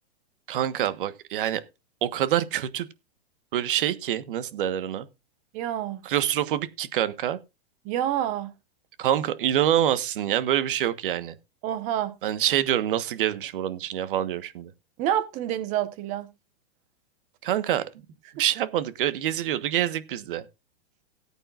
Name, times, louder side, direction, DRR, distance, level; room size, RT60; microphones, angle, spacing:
voice 1, 0.5-1.6 2.0-2.9 3.5-5.1 6.0-7.4 9.0-11.4 12.2-14.7 17.4-17.8 18.3-20.4, right 11 dB, 60° right, 1.3 m, -26 dB
voice 2, 5.5-6.0 7.8-8.5 11.6-12.1 15.0-16.3, right 11 dB, 25° right, 1.1 m, -27 dB
18.0 x 8.9 x 2.5 m
supercardioid pair, 170°, 30 cm